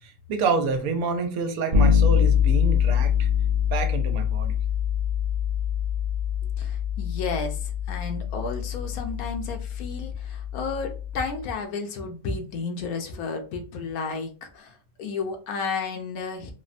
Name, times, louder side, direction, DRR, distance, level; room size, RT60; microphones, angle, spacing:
voice 1, 0.0-3.3 3.7-4.6, right 4 dB, 85° right, 5 dB, 1.1 m, -28 dB
Bass guitar, 1.7-11.4, left 8 dB, 60° right, 0.3 m, -24 dB
voice 2, 6.6-16.5, left 4 dB, 90° left, 4 dB, 1.1 m, -32 dB
3.2 x 2.1 x 2.5 m, 0.35 s
omnidirectional pair, 1.5 m